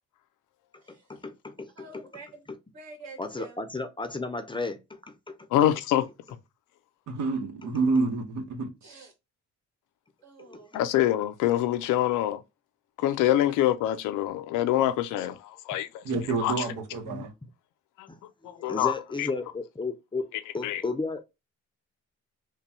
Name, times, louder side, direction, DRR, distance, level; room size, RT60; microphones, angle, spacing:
voice 1, 0.9-2.1 2.5-2.6 3.2-5.4 10.4-10.6 17.1-17.3 18.1-18.2 18.6-20.3 20.5-21.2, left 3 dB, 15° left, 0.5 m, -34 dB
voice 2, 1.8-2.4 2.7-3.6 8.8-9.1 10.2-10.7, right 4 dB, 65° right, 1.9 m, -46 dB
voice 3, 5.5-6.1 10.7-12.4 13.0-16.0 16.4-16.5 18.0-18.1 18.4-19.3 20.3-20.8, left 13 dB, 90° left, 0.5 m, -25 dB
voice 4, 7.1-8.7 16.0-17.3, right 3 dB, 80° right, 1.0 m, -28 dB
3.3 x 2.2 x 4.2 m
cardioid pair, 90°, 30 cm